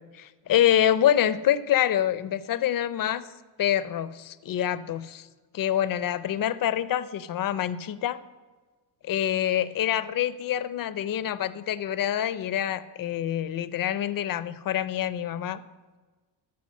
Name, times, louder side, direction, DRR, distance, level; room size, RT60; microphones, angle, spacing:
voice 1, 0.1-3.3 3.6-5.3 5.5-8.2 9.0-15.6, left 11 dB, 50° left, 14 dB, 0.6 m, -26 dB
14.0 x 5.7 x 6.5 m, 1.3 s
wide cardioid pair, 170°, 43 cm